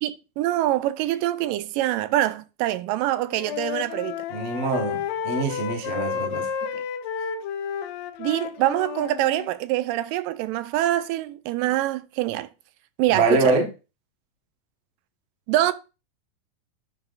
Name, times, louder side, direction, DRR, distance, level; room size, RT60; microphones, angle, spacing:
voice 1, 0.0-4.2 6.7-6.8 8.2-12.5 13.0-13.6 15.5-15.7, right 14 dB, 80° right, 2.1 m, -25 dB
Wind instrument woodwind instrument, 3.1-9.5, left 7 dB, 85° left, 1.5 m, -31 dB
voice 2, 4.3-6.5 13.1-13.7, right 3 dB, 65° right, 0.6 m, -23 dB
9.9 x 4.1 x 3.9 m
omnidirectional pair, 4.0 m